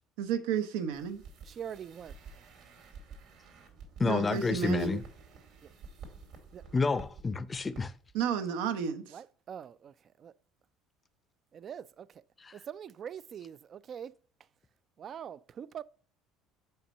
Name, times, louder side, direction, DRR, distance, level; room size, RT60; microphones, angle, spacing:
voice 1, 0.2-1.2 4.0-5.0 8.1-9.2, right 7 dB, 85° right, 0.9 m, -32 dB
sound 1, 0.9-7.2 7.5-7.8 8.1-8.2, right 5 dB, 65° right, 2.3 m, -51 dB
voice 2, 1.4-2.1 4.4-4.6 4.9-5.0 5.6-5.7 6.5-6.6 9.1-9.9 10.2-10.3 11.5-12.2 12.5-14.1 15.0-15.8, right 8 dB, 40° right, 0.3 m, -43 dB
voice 3, 4.0-5.0 6.7-7.9 12.4-12.5, left 4 dB, 20° left, 0.5 m, -29 dB
5.6 x 4.4 x 5.4 m
supercardioid pair, 110°, 0 cm